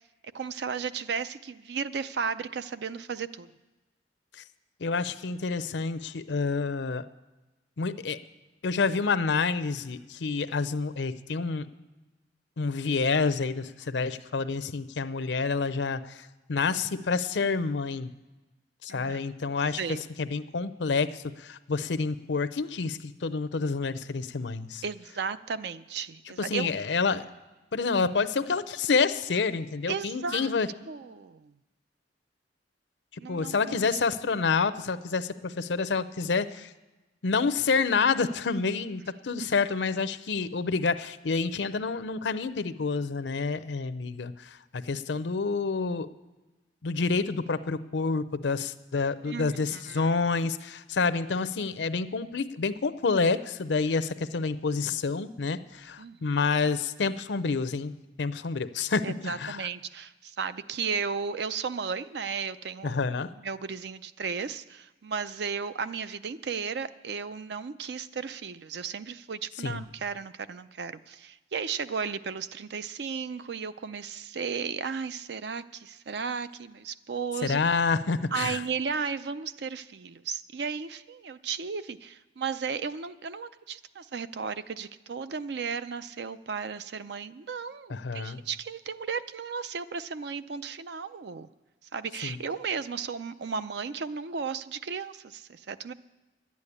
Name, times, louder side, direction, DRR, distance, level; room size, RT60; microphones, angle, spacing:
voice 1, 0.3-3.5 18.9-19.2 19.8-20.0 24.8-26.7 29.9-30.5 30.9-31.5 33.2-33.8 39.4-39.5 49.2-50.2 56.0-56.4 59.0-63.0 63.4-77.6 78.3-91.5 91.9-95.9, right 6 dB, 65° right, 13 dB, 0.5 m, -34 dB
voice 2, 4.8-7.1 7.8-8.2 8.6-11.7 12.6-18.1 18.8-24.8 26.4-27.3 27.7-30.7 33.3-36.7 37.2-46.1 46.8-57.9 58.2-59.7 62.8-63.3 69.6-69.8 77.4-78.6 87.9-88.4 92.2-92.4, left 4 dB, 75° left, 12 dB, 0.6 m, -28 dB
11.5 x 8.5 x 9.9 m, 1.1 s
head